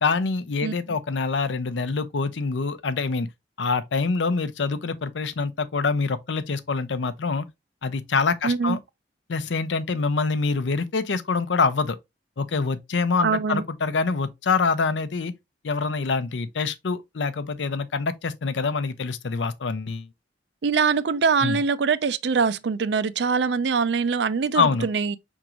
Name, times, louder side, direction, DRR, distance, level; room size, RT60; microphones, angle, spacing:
voice 1, 0.0-3.3 3.6-7.5 7.8-8.8 9.3-12.0 12.4-15.3 15.6-20.1 21.4-21.6 24.5-24.9, left 4 dB, 85° left, 0.6 m, -25 dB
voice 2, 0.6-1.0 8.4-8.8 13.2-13.6 20.6-25.2, right 5 dB, 70° right, 0.4 m, -23 dB
4.9 x 3.6 x 2.9 m
head